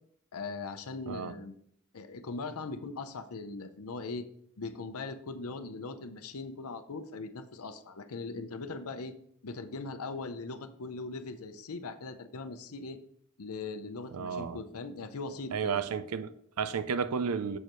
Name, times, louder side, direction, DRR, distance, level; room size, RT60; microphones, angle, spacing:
voice 1, 0.3-1.5 1.9-4.3 4.6-9.1 9.4-13.0 13.4-15.8, left 3 dB, 75° left, 0.7 m, -40 dB
voice 2, 14.1-14.6 15.5-17.6, right 6 dB, 80° right, 0.5 m, -32 dB
6.7 x 6.6 x 3.1 m
head